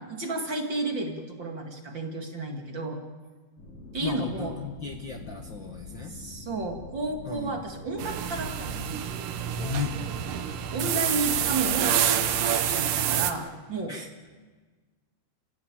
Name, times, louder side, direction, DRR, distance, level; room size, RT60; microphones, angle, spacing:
voice 1, 0.0-3.0 3.9-4.5 6.1-9.0 10.7-12.0 12.4-13.9, right 2 dB, 40° right, 3 dB, 2.4 m, -32 dB
sound 1, 3.6-11.9, left 2 dB, 80° left, 6.7 m, -45 dB
voice 2, 4.0-6.1 7.2-7.6 9.5-9.9 12.4-12.9 13.9-14.1, left 6 dB, 50° left, 4 dB, 1.5 m, -35 dB
sound 2, 8.0-13.3, right 10 dB, 80° right, 2.7 m, -27 dB
30.0 x 16.5 x 8.9 m, 1.4 s
omnidirectional pair, 3.7 m